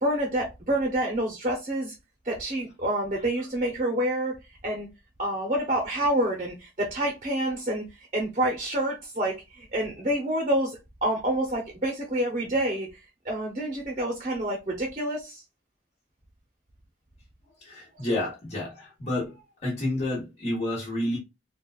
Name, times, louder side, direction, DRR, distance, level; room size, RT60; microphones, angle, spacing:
voice 1, 0.0-1.9 2.2-4.3 4.6-4.9 5.2-15.4 17.9-18.1, right 1 dB, 35° right, 0.7 m, -28 dB
voice 2, 17.6-21.2, left 1 dB, 35° left, 1.1 m, -30 dB
3.8 x 2.4 x 2.4 m
head